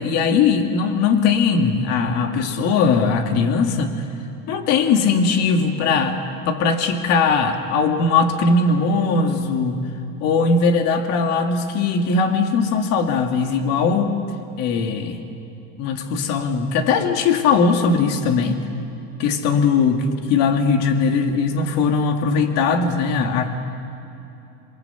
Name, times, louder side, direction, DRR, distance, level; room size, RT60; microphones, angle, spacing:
voice 1, 0.0-4.0 4.5-6.2 6.5-9.8 10.2-14.2 14.6-15.2 15.8-18.6 19.2-23.5, left 4 dB, 55° left, 4 dB, 2.4 m, -19 dB
28.0 x 23.0 x 8.2 m, 2.9 s
cardioid pair, 140°, 30 cm